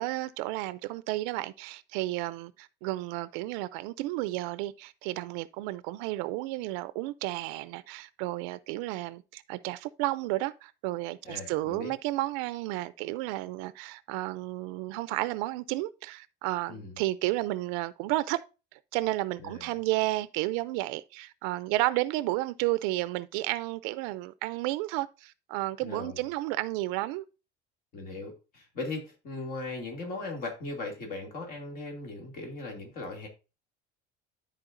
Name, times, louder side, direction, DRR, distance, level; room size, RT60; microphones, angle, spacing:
voice 1, 0.0-18.4 18.7-27.2, right 18 dB, 85° right, 0.5 m, -32 dB
voice 2, 11.2-11.9 16.7-17.0 19.4-19.7 25.8-26.2 27.9-33.3, left 3 dB, 45° left, 2.5 m, -38 dB
12.5 x 4.4 x 2.6 m
cardioid pair, 150°, 21 cm